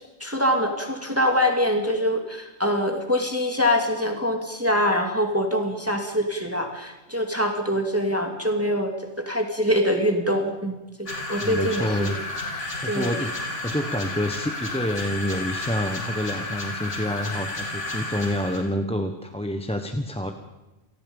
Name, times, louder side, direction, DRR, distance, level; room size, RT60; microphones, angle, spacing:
voice 1, 0.0-12.1 12.5-13.1, equal, 10° right, 3 dB, 2.4 m, -24 dB
sound 1, 11.1-18.7, left 2 dB, 80° left, 3.5 m, -32 dB
voice 2, 11.4-12.1 12.8-13.3 13.6-20.3, left 1 dB, 5° left, 6 dB, 1.0 m, -28 dB
28.0 x 18.5 x 5.4 m, 1.0 s
omnidirectional pair, 1.2 m